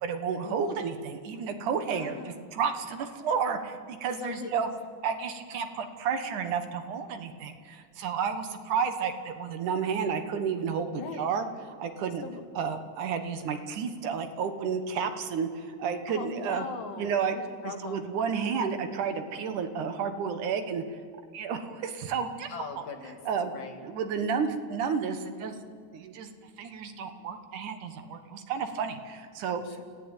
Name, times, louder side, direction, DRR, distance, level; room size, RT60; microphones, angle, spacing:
voice 1, 0.0-4.7 5.0-11.5 11.8-12.2 12.6-16.6 17.0-17.4 17.6-20.8 21.3-22.8 23.3-23.5 23.8-25.6 25.9-26.3 26.6-29.6, right 6 dB, 80° right, 7 dB, 2.9 m, -31 dB
voice 2, 1.9-2.4 4.2-4.5 11.0-11.3 12.2-12.4 16.1-18.0 22.5-23.2 23.5-23.8 29.6-29.8, left 4 dB, 55° left, 3 dB, 3.2 m, -40 dB
29.5 x 15.5 x 9.1 m, 2.1 s
omnidirectional pair, 3.6 m